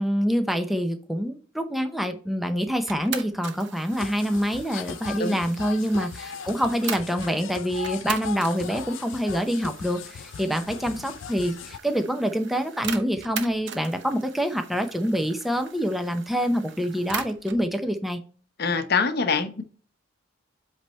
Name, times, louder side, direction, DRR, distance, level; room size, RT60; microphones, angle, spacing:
voice 1, 0.0-18.2, equal, ahead, 0.6 m, -26 dB
sound 1, 2.9-7.3 7.8-17.6, right 8 dB, 60° right, 0.8 m, -40 dB
sound 2, 3.9-11.8, left 7 dB, 70° left, 0.4 m, -38 dB
voice 2, 18.6-19.6, left 5 dB, 50° left, 0.8 m, -24 dB
8.0 x 3.5 x 4.2 m
head